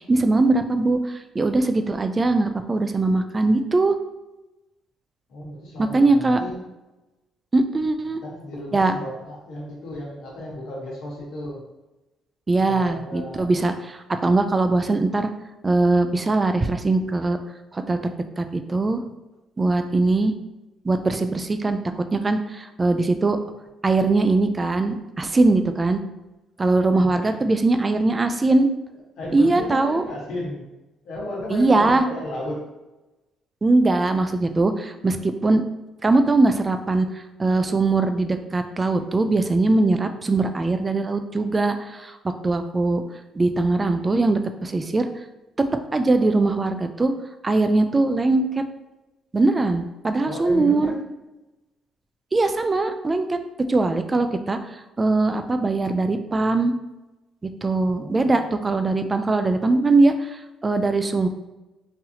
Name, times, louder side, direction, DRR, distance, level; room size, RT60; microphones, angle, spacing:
voice 1, 0.0-3.9 5.9-6.4 7.5-8.2 8.7-8.9 12.5-15.3 15.6-17.4 17.7-18.0 18.4-19.0 19.6-20.3 20.8-23.4 23.8-26.0 26.6-28.7 29.3-30.0 31.5-32.0 33.6-35.6 36.0-37.1 37.4-43.0 43.3-45.1 45.6-47.1 47.4-48.6 49.3-51.0 52.3-53.4 53.7-54.6 55.0-56.7 57.6-61.3, right 2 dB, 20° right, 8 dB, 0.3 m, -21 dB
voice 2, 5.3-6.7 8.2-11.6 12.6-13.5 27.0-27.3 29.2-30.6 31.0-32.6 50.2-51.0 57.9-58.8, left 1 dB, 75° left, -4 dB, 1.2 m, -34 dB
3.9 x 2.7 x 2.8 m, 1.0 s
cardioid pair, 120°, 0 cm